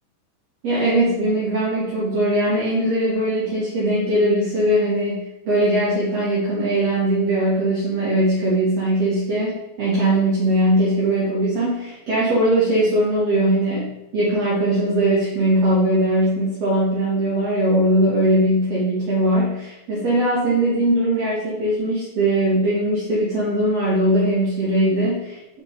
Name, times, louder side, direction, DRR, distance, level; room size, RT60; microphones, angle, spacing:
voice 1, 0.6-25.6, right 1 dB, 60° right, -8 dB, 2.4 m, -20 dB
5.3 x 4.9 x 4.3 m, 0.93 s
omnidirectional pair, 3.7 m